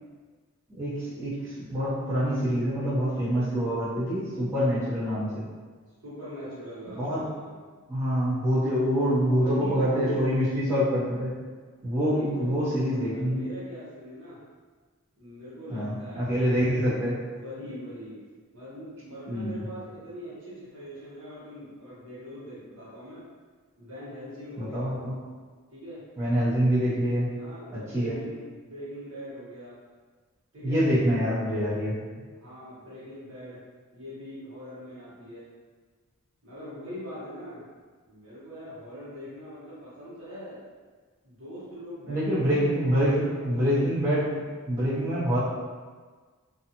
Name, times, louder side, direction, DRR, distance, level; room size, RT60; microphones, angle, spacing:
voice 1, 0.7-5.4 7.0-7.2 7.9-11.3 11.8-13.4 15.7-17.1 19.3-19.6 24.6-25.1 26.2-27.3 27.7-28.2 30.6-32.0 42.1-45.4, equal, 15° right, -14 dB, 1.1 m, -26 dB
voice 2, 6.0-7.6 9.2-10.3 12.0-14.4 15.2-18.2 18.5-23.2 23.7-24.9 25.7-26.0 27.3-29.8 30.5-30.8 32.3-33.6 33.9-35.4 36.4-37.6 38.0-40.6 41.2-43.7, equal, 65° right, -11 dB, 1.2 m, -42 dB
2.6 x 2.5 x 2.8 m, 1.5 s
head